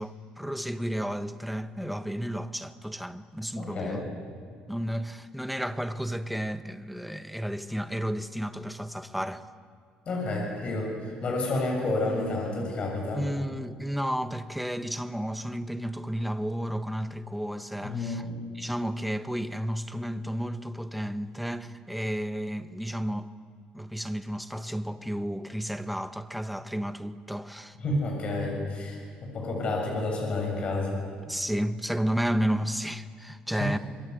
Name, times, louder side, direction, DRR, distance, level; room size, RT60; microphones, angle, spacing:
voice 1, 0.0-4.0 4.7-9.5 13.1-18.3 18.5-23.3 23.7-27.8 31.3-33.8, equal, ahead, 1.1 m, -32 dB
voice 2, 3.6-4.1 10.1-13.2 17.8-18.3 27.8-31.0 33.5-33.7, left 2 dB, 40° left, 7.1 m, -30 dB
26.5 x 22.5 x 8.1 m
cardioid pair, 135°, 3 cm